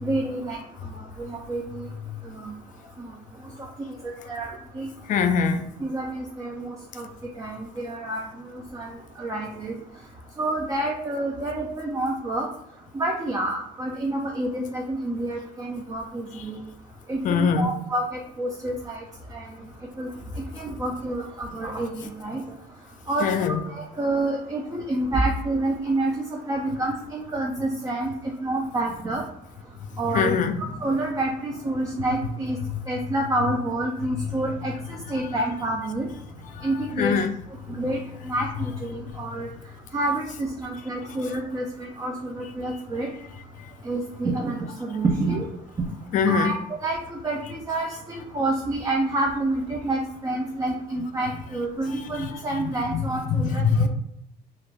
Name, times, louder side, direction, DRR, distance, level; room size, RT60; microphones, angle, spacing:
voice 1, 0.0-0.9 1.2-1.9 2.4-2.5 3.0-3.1 3.6-3.7 4.0-4.9 5.8-7.1 7.4-8.3 8.5-9.7 10.4-12.5 12.9-16.6 17.1-19.0 19.3-19.5 20.0-20.1 20.5-22.4 23.1-28.1 28.4-29.2 30.0-32.6 32.9-34.7 35.1-36.1 36.6-37.2 37.7-39.5 39.9-43.1 43.8-45.5 46.3-53.9, right 2 dB, 20° right, 0.4 m, -28 dB
voice 2, 5.1-5.6 17.2-17.7 23.2-23.6 30.1-30.6 36.5-36.7 37.0-37.3 46.1-46.5 52.2-52.3 52.9-53.9, left 6 dB, 50° left, 0.4 m, -22 dB
2.3 x 2.2 x 3.2 m
cardioid pair, 110°, 17 cm